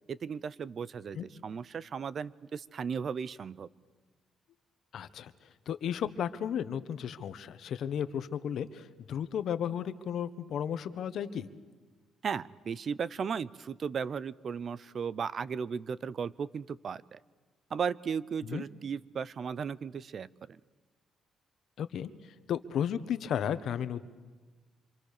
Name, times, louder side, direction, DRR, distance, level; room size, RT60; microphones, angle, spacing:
voice 1, 0.1-3.7 12.2-17.2 17.7-20.6, right 6 dB, 50° right, 19 dB, 0.7 m, -36 dB
voice 2, 4.9-5.3 5.7-11.5 18.4-18.6 21.8-22.1 22.5-24.1, left 9 dB, 70° left, 12 dB, 1.2 m, -34 dB
27.0 x 26.0 x 6.7 m, 1.3 s
cardioid pair, 90°, 0 cm